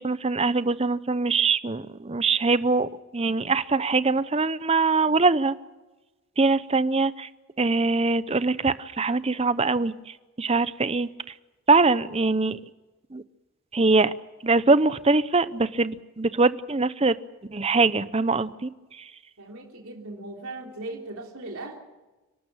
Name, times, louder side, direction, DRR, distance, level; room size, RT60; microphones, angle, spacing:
voice 1, 0.0-5.5 6.4-7.3 7.6-9.9 10.4-11.1 11.7-12.6 13.1-13.2 13.7-14.1 14.4-17.2 17.5-18.7, right 3 dB, 25° right, 15 dB, 0.7 m, -23 dB
voice 2, 19.4-21.8, right 2 dB, 80° right, 0 dB, 3.4 m, -38 dB
30.0 x 12.5 x 8.9 m, 1.1 s
head